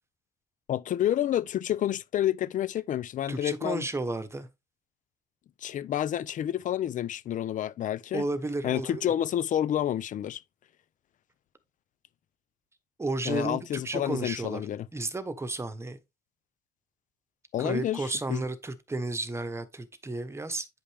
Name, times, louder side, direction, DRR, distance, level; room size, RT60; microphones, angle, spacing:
voice 1, 0.7-3.9 5.6-8.2 8.6-10.4 13.3-14.9 17.5-18.4, left 11 dB, 50° left, 0.6 m, -29 dB
voice 2, 3.3-4.5 8.1-9.1 13.0-14.6 14.9-16.0 17.6-20.7, right 2 dB, 15° right, 1.1 m, -33 dB
8.8 x 5.3 x 3.4 m
cardioid pair, 110°, 17 cm